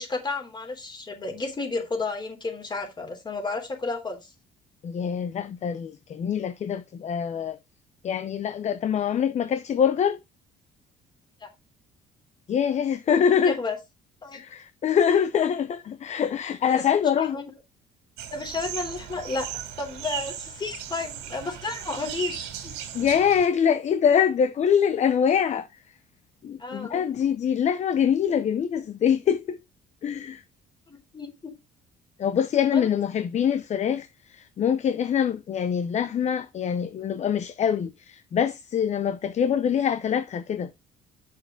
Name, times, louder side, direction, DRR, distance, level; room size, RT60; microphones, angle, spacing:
voice 1, 0.0-4.3 11.4-11.5 13.5-13.8 14.2-14.4 16.7-16.8 17.2-17.5 18.3-19.5 19.8-22.7 26.6-27.0 30.9-31.5 32.7-32.9, left 3 dB, 25° left, 3.3 m, -32 dB
voice 2, 4.8-7.6 8.0-10.2 12.5-13.6 14.3-17.4 22.9-25.7 26.4-29.6 30.0-30.4 32.2-40.7, left 8 dB, 45° left, 0.7 m, -24 dB
sound 1, 18.2-23.5, right 9 dB, 85° right, 2.6 m, -37 dB
8.1 x 6.6 x 3.8 m
cardioid pair, 110°, 17 cm